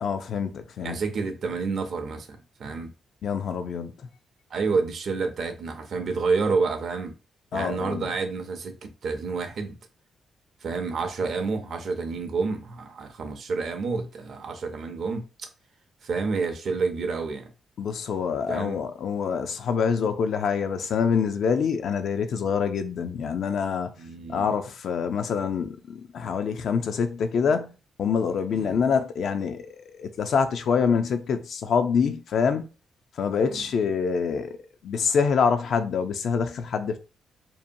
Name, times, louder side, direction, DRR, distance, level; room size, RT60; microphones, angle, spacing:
voice 1, 0.0-1.0 3.2-3.9 7.5-8.1 17.8-23.9 24.3-32.7 33.2-34.6 34.8-37.0, left 6 dB, 70° left, 0.4 m, -26 dB
voice 2, 0.8-2.9 4.5-7.1 7.5-9.8 10.6-15.2 16.0-17.5 18.5-18.8 24.0-24.5 28.5-28.8 33.4-33.6, right 4 dB, 65° right, 0.5 m, -29 dB
2.7 x 2.1 x 2.6 m
cardioid pair, 75°, 0 cm